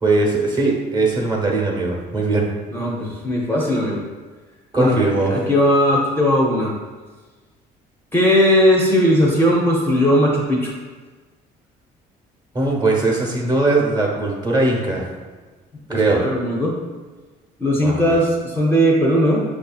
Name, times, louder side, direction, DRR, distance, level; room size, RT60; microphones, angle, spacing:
voice 1, 0.0-2.5 4.7-5.3 12.5-15.1 15.9-16.2 17.8-18.2, right 2 dB, 25° right, -2 dB, 1.0 m, -20 dB
voice 2, 2.7-4.0 4.8-6.7 8.1-10.7 15.9-16.8 17.6-19.4, equal, 15° left, -3 dB, 0.6 m, -18 dB
6.0 x 2.7 x 2.3 m, 1.3 s
cardioid pair, 110°, 17 cm